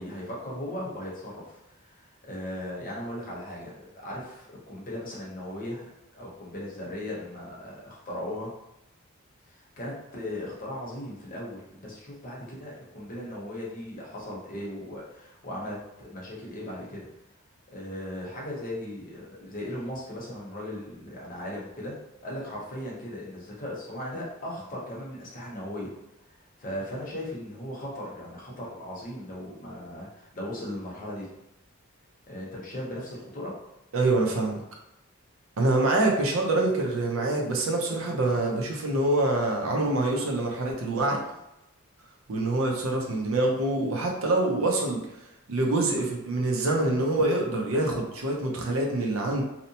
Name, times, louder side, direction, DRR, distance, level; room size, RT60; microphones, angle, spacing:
voice 1, 0.0-8.5 9.5-17.1 17.7-22.0 22.2-25.9 26.3-31.3 32.3-33.6 34.2-34.3, left 1 dB, 40° left, -4 dB, 0.8 m, -37 dB
voice 2, 33.9-34.6 35.6-41.2 42.3-45.0 45.5-49.4, right 2 dB, 75° right, 0 dB, 0.6 m, -25 dB
2.8 x 2.1 x 2.7 m, 0.89 s
head